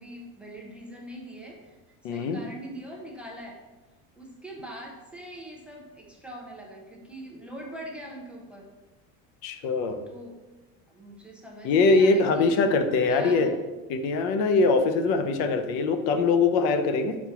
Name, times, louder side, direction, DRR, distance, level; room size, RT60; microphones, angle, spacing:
voice 1, 0.0-1.8 2.1-3.6 4.2-8.7 10.1-10.4 10.9-12.6 13.1-13.6, right 1 dB, 5° right, -2 dB, 0.6 m, -42 dB
voice 2, 2.0-2.4 9.4-10.0 11.6-13.5 13.9-17.2, left 3 dB, 70° left, 8 dB, 0.8 m, -22 dB
5.9 x 4.4 x 5.6 m, 1.2 s
cardioid pair, 175°, 36 cm